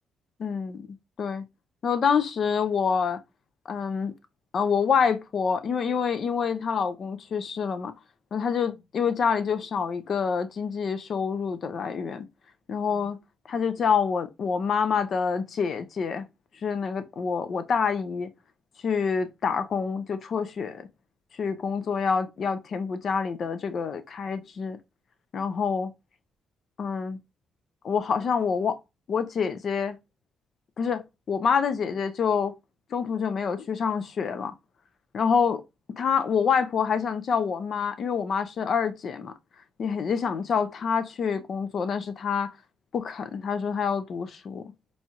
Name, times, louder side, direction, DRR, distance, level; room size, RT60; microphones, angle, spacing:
voice 1, 0.4-0.9 1.2-1.4 1.8-3.2 3.7-4.1 4.5-7.9 8.3-12.3 12.7-13.2 13.5-16.2 16.6-18.3 18.8-20.9 21.4-24.8 25.3-25.9 26.8-27.2 27.8-28.8 29.1-30.0 30.8-32.5 32.9-34.5 35.1-35.6 35.9-39.3 39.8-42.5 42.9-44.6, left 6 dB, 55° left, 0.5 m, -27 dB
4.1 x 2.3 x 2.8 m
cardioid pair, 90°, 0 cm